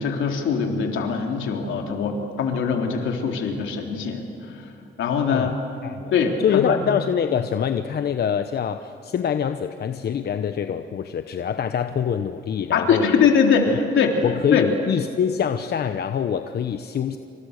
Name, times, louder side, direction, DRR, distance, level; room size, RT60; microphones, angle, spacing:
voice 1, 0.0-4.2 4.5-4.6 5.0-5.5 6.1-6.8 12.7-14.2 14.5-14.7, left 6 dB, 75° left, 2 dB, 3.4 m, -22 dB
voice 2, 5.8-6.1 6.4-13.3 13.7-13.8 14.2-17.2, left 8 dB, 55° left, 8 dB, 1.0 m, -25 dB
28.0 x 25.5 x 6.7 m, 2.7 s
cardioid pair, 90°, 20 cm